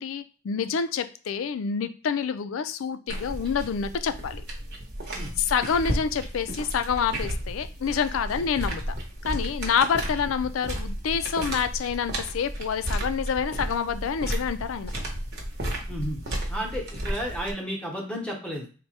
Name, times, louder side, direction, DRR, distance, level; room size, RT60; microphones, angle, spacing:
voice 1, 0.0-4.4 5.4-8.9 9.2-14.9, left 6 dB, 80° left, 11 dB, 0.4 m, -27 dB
sound 1, 3.1-17.5, right 1 dB, 55° right, 0.9 m, -33 dB
voice 2, 15.9-16.2 16.5-18.7, equal, 5° left, -1 dB, 0.8 m, -32 dB
3.3 x 2.2 x 4.1 m, 0.38 s
head